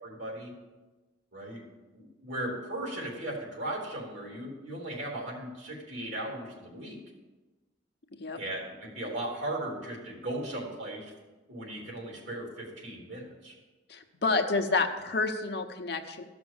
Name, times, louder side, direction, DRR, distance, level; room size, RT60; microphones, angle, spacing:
voice 1, 0.0-0.5 1.3-1.6 1.9-7.0 8.4-11.1 11.5-13.6, right 1 dB, 75° right, -1 dB, 3.5 m, -37 dB
voice 2, 13.9-16.2, left 3 dB, 60° left, 5 dB, 0.9 m, -29 dB
14.0 x 6.1 x 7.0 m, 1.2 s
head